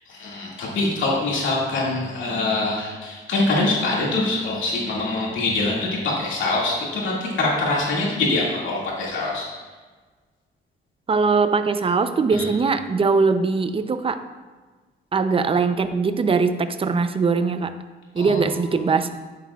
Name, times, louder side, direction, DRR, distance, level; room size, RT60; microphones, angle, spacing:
voice 1, 0.1-9.5 12.3-12.5 18.2-18.4 18.7-18.9, left 2 dB, 75° left, -4 dB, 2.2 m, -24 dB
voice 2, 11.1-14.2 15.1-17.7 18.2-19.1, right 4 dB, 30° right, 10 dB, 0.6 m, -21 dB
9.4 x 9.2 x 2.4 m, 1.4 s
cardioid pair, 90°, 20 cm